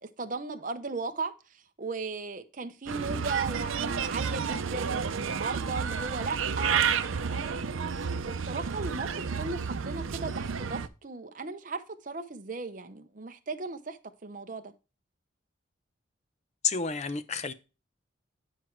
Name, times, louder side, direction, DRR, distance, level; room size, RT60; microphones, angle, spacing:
voice 1, 0.0-7.6 8.2-14.7, right 3 dB, 40° right, 0.7 m, -37 dB
Bird, 2.9-10.9, right 6 dB, 80° right, 0.6 m, -31 dB
voice 2, 16.6-17.5, left 5 dB, 35° left, 0.6 m, -30 dB
9.9 x 4.6 x 4.4 m
head